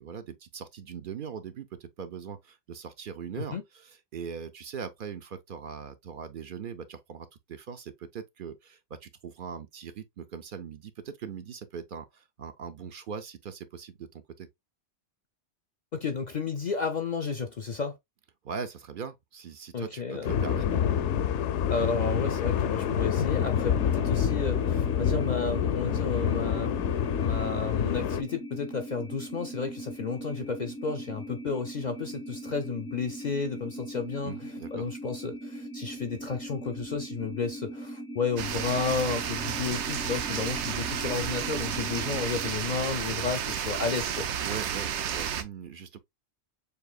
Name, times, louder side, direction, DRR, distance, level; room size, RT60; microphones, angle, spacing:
voice 1, 0.0-14.5 18.4-20.7 34.2-34.9 44.4-46.0, right 6 dB, 55° right, 0.7 m, -40 dB
voice 2, 15.9-18.0 19.7-20.3 21.7-26.8 27.2-44.3, left 5 dB, 50° left, 0.6 m, -32 dB
sound 1, 20.2-28.2, left 8 dB, 85° left, 0.9 m, -27 dB
sound 2, 23.4-42.6, right 1 dB, 5° left, 0.4 m, -40 dB
sound 3, 38.4-45.4, right 8 dB, 80° right, 0.9 m, -32 dB
6.7 x 2.7 x 2.2 m
omnidirectional pair, 1.2 m